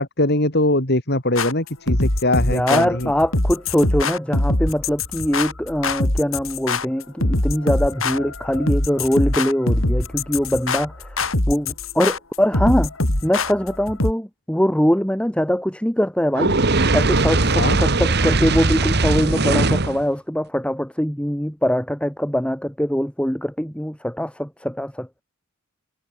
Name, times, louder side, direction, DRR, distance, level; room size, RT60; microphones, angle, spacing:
voice 1, 0.0-3.1 17.6-17.8, left 1 dB, 55° left, 6.9 m, -21 dB
sound 1, 1.4-14.1, left 2 dB, 80° left, 3.9 m, -23 dB
voice 2, 2.5-11.2 11.5-12.9 13.2-16.6 16.9-25.1, equal, 5° left, 3.1 m, -22 dB
Fire, 16.3-20.0, right 3 dB, 55° right, 1.7 m, -19 dB
head